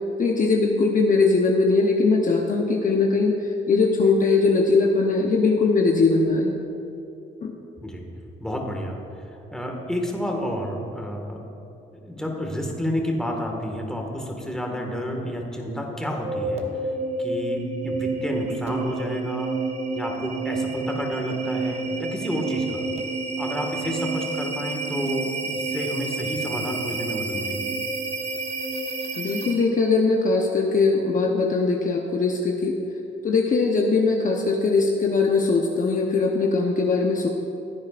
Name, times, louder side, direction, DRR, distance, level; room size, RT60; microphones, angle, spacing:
voice 1, 0.2-6.6 7.4-7.5 29.2-32.7 33.2-37.3, left 3 dB, 40° left, 0 dB, 0.9 m, -21 dB
voice 2, 8.4-9.0 9.3-11.4 11.9-16.9 17.2-19.6 19.9-22.8 23.4-27.7, equal, 5° left, 0 dB, 1.8 m, -30 dB
sound 1, 15.9-29.8, right 3 dB, 30° right, 1.2 m, -29 dB
15.5 x 9.4 x 2.5 m, 2.9 s
cardioid pair, 90°, 20 cm